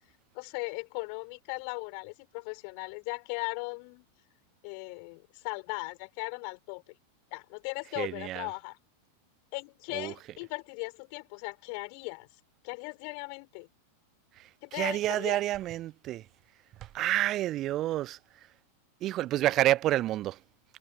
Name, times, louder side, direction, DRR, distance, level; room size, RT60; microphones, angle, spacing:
voice 1, 0.3-4.1 4.6-6.8 7.3-8.8 9.5-12.3 12.6-13.7 14.6-15.4, left 40 dB or more, 45° left, 7.4 m, -38 dB
voice 2, 8.0-8.5 9.9-10.1 14.7-16.2 16.9-18.2 19.0-20.3, right 14 dB, 35° right, 1.1 m, -28 dB
figure-of-eight pair, 90°, 0 cm